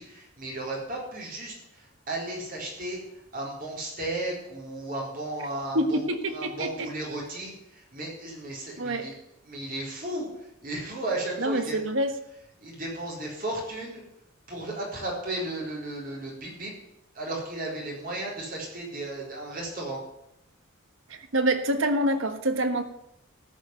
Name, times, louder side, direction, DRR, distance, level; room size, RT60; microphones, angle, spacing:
voice 1, 0.0-6.0 6.3-9.1 9.4-11.8 12.6-14.0 14.5-16.7 17.1-20.0, right 1 dB, 45° right, -3 dB, 4.1 m, -34 dB
voice 2, 5.7-6.9 8.8-9.1 11.4-12.1 21.1-22.8, right 1 dB, 65° right, 7 dB, 1.3 m, -26 dB
14.0 x 5.4 x 9.0 m, 0.83 s
head